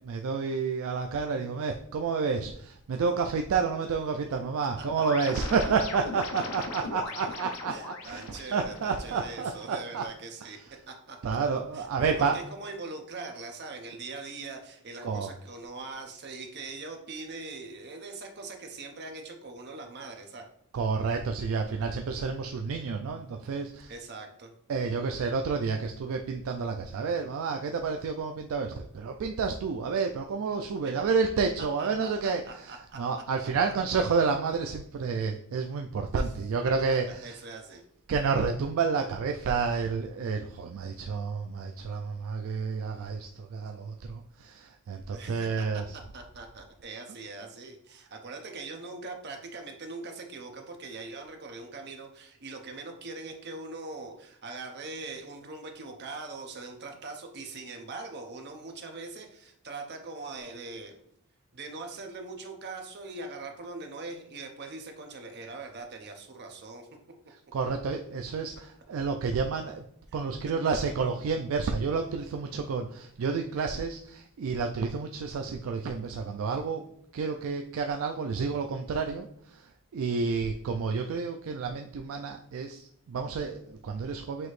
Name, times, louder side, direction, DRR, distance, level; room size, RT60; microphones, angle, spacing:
voice 1, 0.0-10.0 11.2-12.4 15.0-15.3 20.7-23.9 24.7-37.4 38.1-45.8 67.5-69.8 70.1-76.8 77.1-84.5, right 5 dB, 65° right, 4 dB, 0.3 m, -30 dB
sound 1, 4.8-9.8, left 3 dB, 75° left, 0.6 m, -39 dB
voice 2, 4.8-6.4 7.7-11.2 11.7-20.4 23.9-24.5 30.8-30.9 31.8-33.0 36.2-36.3 37.1-37.8 45.1-45.7 45.9-61.0 61.5-66.9, right 3 dB, 50° right, 3 dB, 0.8 m, -42 dB
6.0 x 2.8 x 3.1 m, 0.68 s
head